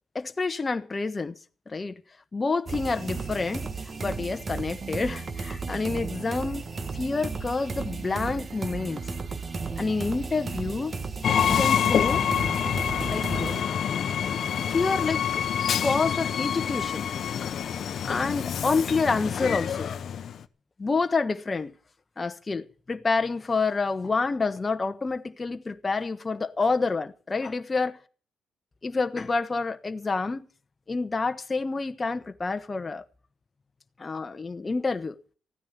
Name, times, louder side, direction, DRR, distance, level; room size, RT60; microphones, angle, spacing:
voice 1, 0.1-1.3 1.7-2.0 2.3-3.7 4.0-6.6 6.9-9.0 9.8-10.9 11.4-12.2 13.0-13.6 14.6-17.1 18.0-19.9 20.8-21.7 22.2-28.0 28.8-30.4 30.9-33.0 34.0-35.2, left 4 dB, 25° left, 1.2 m, -28 dB
sound 1, 2.7-13.6, right 4 dB, 35° right, 1.4 m, -34 dB
Train, 11.2-20.4, left 9 dB, 60° left, 0.9 m, -27 dB
15.0 x 9.6 x 6.8 m
cardioid pair, 90°, 0 cm